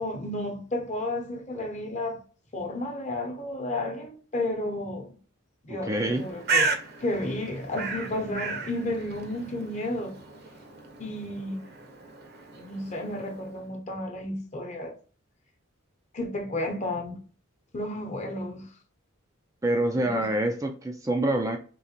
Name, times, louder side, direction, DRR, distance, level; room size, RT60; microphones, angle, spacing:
voice 1, 0.0-2.2 2.5-5.1 5.6-6.7 7.0-10.2 11.0-11.6 12.6-15.0 16.1-17.2 17.7-18.7 19.9-20.2, left 1 dB, 35° left, 0.9 m, -32 dB
voice 2, 5.7-6.2 19.6-21.6, right 1 dB, 15° right, 0.4 m, -26 dB
Bird, 6.0-13.6, right 4 dB, 50° right, 0.8 m, -34 dB
3.8 x 3.1 x 2.9 m
head